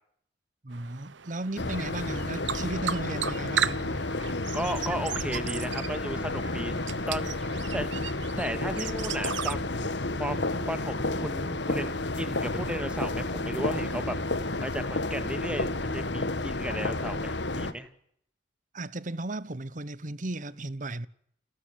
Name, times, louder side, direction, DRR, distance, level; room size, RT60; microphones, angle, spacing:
voice 1, 0.6-3.9 18.7-21.1, right 2 dB, 40° right, 1.1 m, -35 dB
sound 1, 0.7-9.5, right 9 dB, 70° right, 0.9 m, -36 dB
sound 2, 1.6-17.7, left 2 dB, 65° left, 1.8 m, -31 dB
voice 2, 4.5-6.8 7.1-7.3 7.7-7.9 8.4-9.7 10.2-10.4 10.7-14.2 14.6-17.9, right 1 dB, 5° right, 2.0 m, -35 dB
29.5 x 13.0 x 9.5 m
head